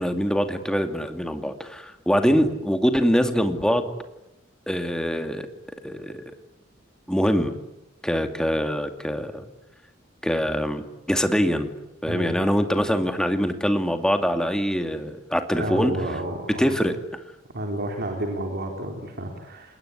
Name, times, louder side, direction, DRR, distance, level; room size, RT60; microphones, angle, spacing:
voice 1, 0.0-3.9 4.7-5.5 5.8-6.2 7.1-7.5 8.0-9.4 10.2-11.7 12.0-15.9 16.6-17.0, equal, 5° left, 7 dB, 2.4 m, -23 dB
voice 2, 12.1-12.4 15.5-16.8 17.5-19.7, right 1 dB, 55° right, 2 dB, 4.0 m, -31 dB
29.5 x 20.5 x 9.9 m, 0.92 s
head